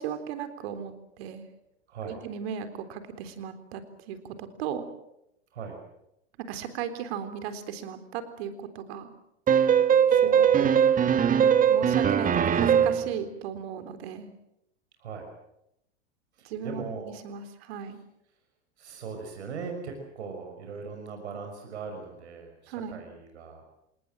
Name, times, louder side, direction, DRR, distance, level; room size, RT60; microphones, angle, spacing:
voice 1, 0.0-1.5 2.0-4.9 6.5-9.1 10.1-10.7 11.3-14.3 16.4-18.0 22.7-23.0, right 8 dB, 65° right, 9 dB, 3.8 m, -36 dB
voice 2, 1.9-2.2 5.5-5.8 10.2-10.8 15.0-15.3 16.3-17.1 18.8-23.6, right 5 dB, 85° right, 4 dB, 5.9 m, -39 dB
sound 1, 9.5-13.1, right 8 dB, 25° right, 1.5 m, -21 dB
28.0 x 19.0 x 7.7 m, 0.82 s
hypercardioid pair, 110°, 33 cm